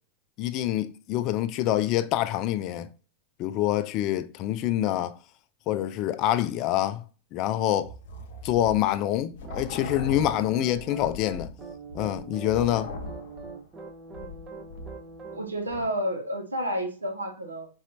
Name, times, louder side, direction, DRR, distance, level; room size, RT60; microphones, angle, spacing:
voice 1, 0.4-2.9 3.4-5.1 5.7-7.0 7.3-7.9 8.4-11.5 11.9-12.9, left 13 dB, 40° left, 0.4 m, -26 dB
sound 1, 7.8-15.3 15.7-15.9, left 2 dB, 55° left, 0.7 m, -40 dB
sound 2, 9.4-15.5, right 5 dB, 25° right, 0.7 m, -43 dB
voice 2, 14.2-14.6 15.3-17.7, equal, 80° right, 1.0 m, -31 dB
4.2 x 4.0 x 2.6 m
figure-of-eight pair, 90°, 0 cm